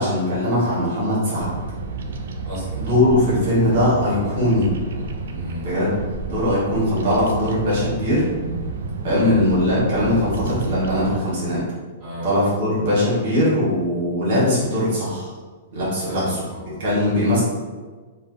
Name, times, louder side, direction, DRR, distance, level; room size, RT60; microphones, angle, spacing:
voice 1, 0.0-1.5 2.8-4.7 5.6-5.9 6.2-8.2 9.0-11.6 12.2-15.3 15.7-16.4 16.8-17.4, left 1 dB, 45° right, -8 dB, 1.2 m, -20 dB
Bird vocalization bird call bird song, 1.4-11.2, right 3 dB, 75° right, 0.3 m, -30 dB
voice 2, 2.4-2.8 5.3-5.7 12.0-12.3 16.0-17.1, left 1 dB, 5° right, -14 dB, 1.1 m, -34 dB
3.4 x 2.2 x 2.5 m, 1.4 s
hypercardioid pair, 170°, 0 cm